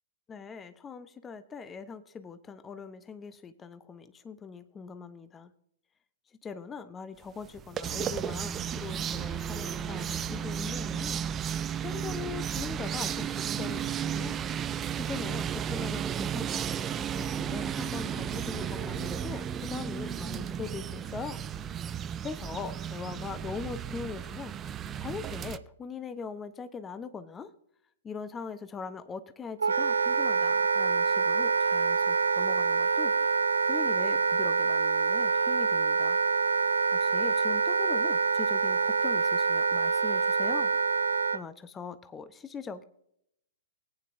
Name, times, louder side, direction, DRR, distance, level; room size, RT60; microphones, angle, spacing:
voice 1, 0.3-5.5 6.4-11.6 11.8-16.7 17.1-21.4 22.2-24.5 24.9-27.5 28.0-33.1 33.7-36.2 36.9-40.7 41.3-42.8, left 5 dB, 15° left, 11 dB, 0.6 m, -41 dB
sound 1, 7.4-25.6, right 8 dB, 25° right, 0.5 m, -34 dB
Wind instrument woodwind instrument, 29.6-41.4, right 5 dB, 80° right, 0.3 m, -26 dB
18.5 x 9.3 x 2.6 m, 0.72 s
hypercardioid pair, 115°, 0 cm